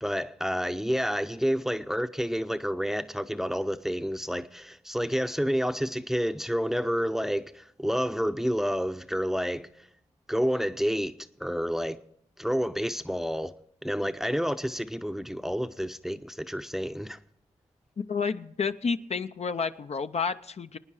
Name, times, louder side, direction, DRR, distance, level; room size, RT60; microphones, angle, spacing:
voice 1, 0.0-9.9 10.3-11.1 11.4-12.0 12.4-13.5 13.8-17.2, equal, 5° right, 0.7 m, -29 dB
voice 2, 18.1-20.8, left 5 dB, 55° left, 0.6 m, -30 dB
23.5 x 9.7 x 4.8 m
cardioid pair, 55°, 13 cm